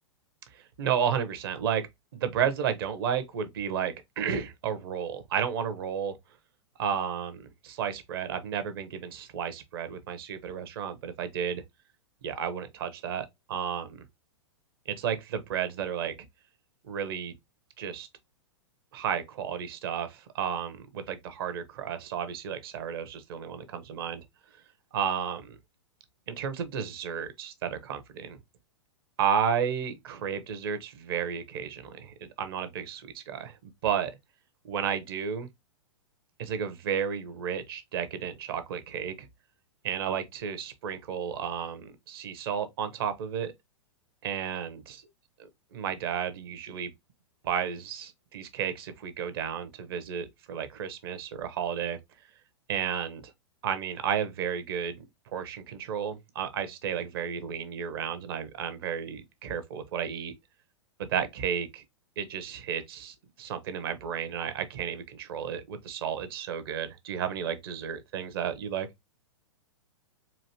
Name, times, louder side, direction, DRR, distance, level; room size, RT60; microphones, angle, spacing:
voice 1, 0.5-1.9 2.1-6.2 6.8-11.6 12.2-14.0 14.9-16.1 16.8-17.4 17.8-18.1 18.9-24.2 24.9-25.6 26.3-28.4 29.2-34.1 34.7-35.5 36.4-39.3 39.8-43.5 44.2-45.0 45.7-46.9 47.4-52.0 52.7-53.3 53.6-55.0 55.3-60.3 61.0-61.8 62.2-68.9, right 8 dB, 50° right, 0.8 m, -32 dB
4.2 x 2.6 x 2.7 m
figure-of-eight pair, 105°, 15 cm